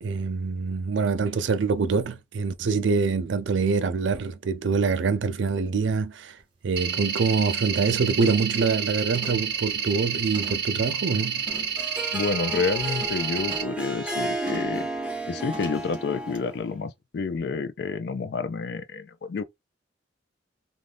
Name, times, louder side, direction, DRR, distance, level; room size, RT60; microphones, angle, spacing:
voice 1, 0.0-6.4 6.6-11.4, right 4 dB, 75° right, 0.4 m, -25 dB
sound 1, 6.4-6.5 6.9-7.2 7.5-7.9 8.2-8.6 9.1-10.8 11.5-11.8 12.5-13.8 14.5-14.8 15.5-15.9 16.3-16.4, right 1 dB, 25° right, 1.0 m, -42 dB
sound 2, 6.8-13.6, right 7 dB, 55° right, 0.8 m, -29 dB
Harp, 11.4-16.7, right 1 dB, 5° right, 0.5 m, -33 dB
voice 2, 12.1-14.9 15.3-19.4, left 4 dB, 55° left, 0.3 m, -29 dB
2.6 x 2.3 x 3.4 m
head